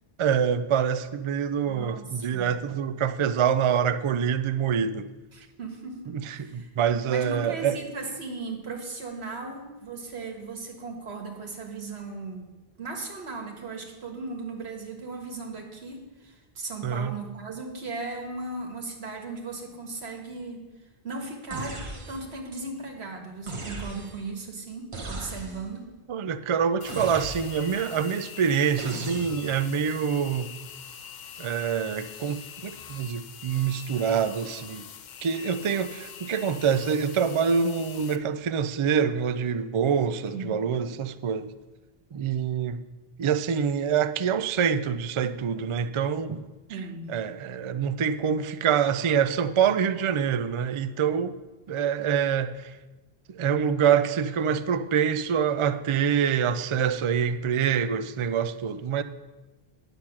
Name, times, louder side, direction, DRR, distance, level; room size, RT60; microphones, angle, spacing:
voice 1, 0.2-5.1 6.1-7.8 16.8-17.2 26.1-30.5 31.4-34.9 35.2-41.5 42.1-42.8 43.2-46.4 47.1-51.4 51.7-52.7 53.3-59.0, right 7 dB, 55° right, 0.3 m, -26 dB
voice 2, 1.7-2.5 5.3-6.7 7.1-12.5 12.8-20.7 21.0-25.9 40.3-40.6 46.7-47.1, right 3 dB, 90° right, 1.7 m, -37 dB
sound 1, 21.5-22.4 23.5-24.3 24.9-25.8 26.9-27.8 28.8-29.7, right 2 dB, 30° right, 1.0 m, -38 dB
sound 2, 26.8-38.2, left 8 dB, 55° left, 0.6 m, -44 dB
9.6 x 6.6 x 5.9 m
omnidirectional pair, 1.0 m